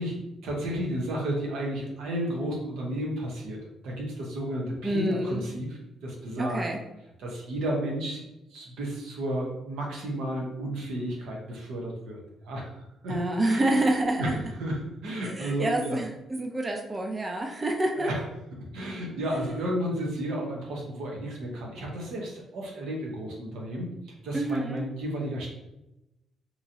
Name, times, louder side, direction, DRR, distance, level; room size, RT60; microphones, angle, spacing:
voice 1, 0.0-3.6 3.8-6.6 7.2-8.2 8.5-12.7 13.0-13.2 13.5-13.8 14.2-14.8 15.0-16.0 18.0-18.2 18.7-25.5, right 1 dB, 85° right, -1 dB, 0.8 m, -32 dB
voice 2, 4.8-5.4 6.4-6.8 13.1-14.4 15.2-18.1 24.3-24.8, right 1 dB, 25° right, 3 dB, 0.4 m, -27 dB
2.9 x 2.6 x 2.7 m, 0.91 s
cardioid pair, 90°, 0 cm